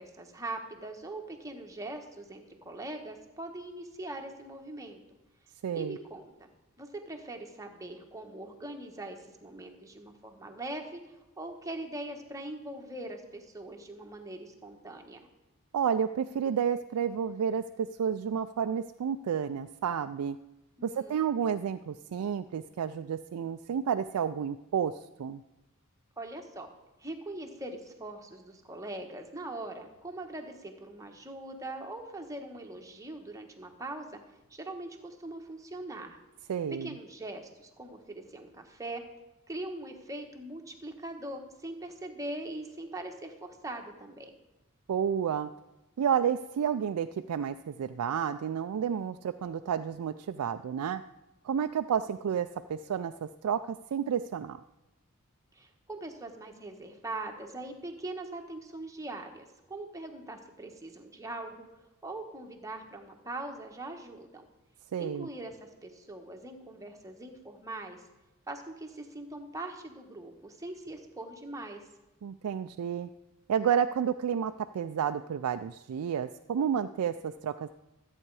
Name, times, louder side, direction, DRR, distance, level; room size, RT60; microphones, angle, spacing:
voice 1, 0.0-5.0 5.7-6.5 6.8-15.2 20.8-21.2 26.2-26.7 27.0-34.2 34.5-36.2 36.8-39.0 39.5-44.4 55.5-61.7 62.0-64.5 65.0-68.0 68.5-71.8, right 2 dB, 15° right, 3 dB, 1.3 m, -41 dB
voice 2, 5.6-6.0 15.7-20.4 20.8-25.4 36.5-37.0 44.9-45.5 46.0-51.0 51.4-54.6 64.9-65.3 72.2-73.1 73.5-77.7, right 8 dB, 85° right, 8 dB, 0.4 m, -31 dB
13.5 x 8.5 x 4.8 m, 1.0 s
head